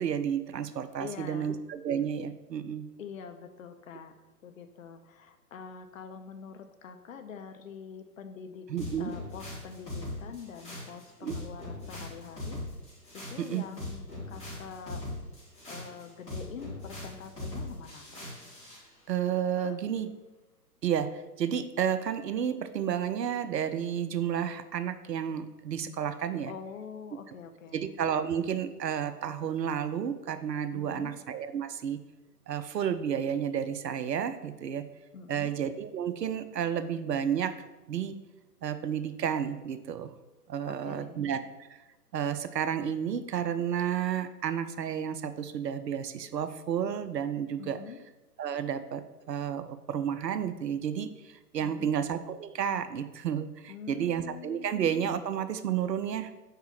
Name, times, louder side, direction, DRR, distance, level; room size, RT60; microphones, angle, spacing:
voice 1, 0.0-2.9 8.7-9.1 11.2-11.4 13.4-13.7 19.1-20.1 20.8-26.5 27.7-32.0 32.5-34.9 35.3-37.6 37.9-38.2 38.6-40.1 40.5-41.4 41.7-41.8 42.1-47.8 48.4-56.3, right 8 dB, 85° right, 11 dB, 0.6 m, -31 dB
voice 2, 1.0-1.5 3.0-4.1 4.4-8.7 9.0-12.6 13.1-15.0 15.7-18.2 19.6-19.8 26.5-27.9 30.7-31.1 35.1-35.5 40.7-41.2 47.6-48.0 51.6-51.9 53.7-54.8, left 6 dB, 55° left, 8 dB, 0.7 m, -45 dB
sound 1, 8.8-18.8, left 2 dB, 15° left, 2.1 m, -40 dB
4.8 x 3.7 x 5.6 m, 1.1 s
hypercardioid pair, 135°, 48 cm